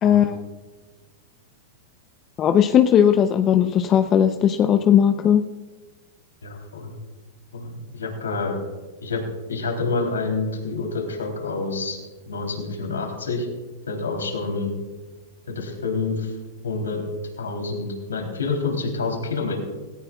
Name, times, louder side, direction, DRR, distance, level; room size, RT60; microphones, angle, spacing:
voice 1, 0.0-0.4 2.4-5.5, left 9 dB, 30° left, 8 dB, 0.7 m, -17 dB
voice 2, 6.4-6.9 7.5-8.5 9.0-9.2 9.5-12.0 12.3-13.5 13.9-14.7 15.5-16.3 16.6-17.0 17.4-19.5, left 3 dB, 85° left, 2 dB, 3.3 m, -27 dB
18.5 x 17.0 x 2.4 m, 1.3 s
hypercardioid pair, 110°, 0 cm